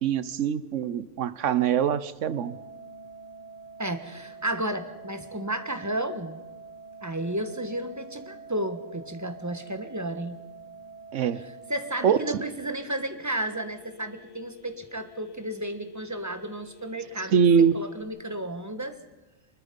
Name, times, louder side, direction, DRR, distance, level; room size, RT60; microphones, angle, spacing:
voice 1, 0.0-2.6 11.1-11.4 12.0-12.2 17.3-17.8, right 7 dB, 80° right, 16 dB, 1.2 m, -23 dB
Organ, 2.2-13.2, right 4 dB, 25° left, 1.6 m, -46 dB
voice 2, 3.8-6.4 7.0-10.4 11.7-17.4 17.7-19.0, right 1 dB, 15° right, 9 dB, 1.4 m, -32 dB
Telephone, 12.0-18.0, left 5 dB, 75° left, 1.7 m, -53 dB
24.5 x 21.0 x 5.4 m, 1.1 s
omnidirectional pair, 1.2 m